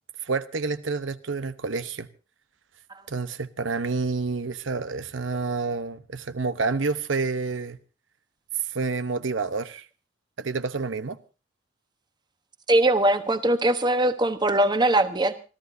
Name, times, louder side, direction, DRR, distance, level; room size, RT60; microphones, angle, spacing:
voice 1, 0.2-2.1 3.1-7.8 8.7-9.9 10.4-11.2, right 4 dB, 85° right, 0.9 m, -28 dB
voice 2, 12.7-15.3, right 1 dB, 25° right, 1.1 m, -21 dB
27.0 x 14.5 x 2.7 m
head